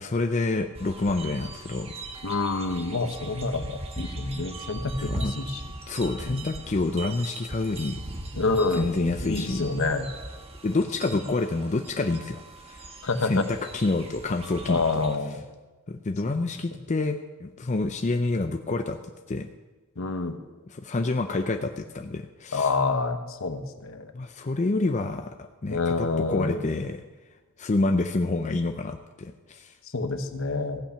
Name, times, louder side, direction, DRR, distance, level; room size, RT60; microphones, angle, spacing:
voice 1, 0.0-1.9 5.0-5.3 5.9-8.0 8.7-9.7 10.6-12.9 13.2-15.0 15.9-19.0 19.3-19.5 20.7-22.7 24.1-25.3 25.6-27.0 27.6-29.7, left 2 dB, 35° left, 6 dB, 0.5 m, -28 dB
sound 1, 0.8-15.2, right 2 dB, 30° right, 1.2 m, -39 dB
voice 2, 2.2-5.6 6.3-6.4 8.3-8.9 9.2-10.2 11.1-11.2 13.0-13.4 14.7-15.4 20.0-20.4 22.5-24.1 25.7-26.6 29.9-30.8, left 3 dB, 65° left, 8 dB, 1.0 m, -27 dB
15.0 x 8.7 x 5.7 m, 1.2 s
head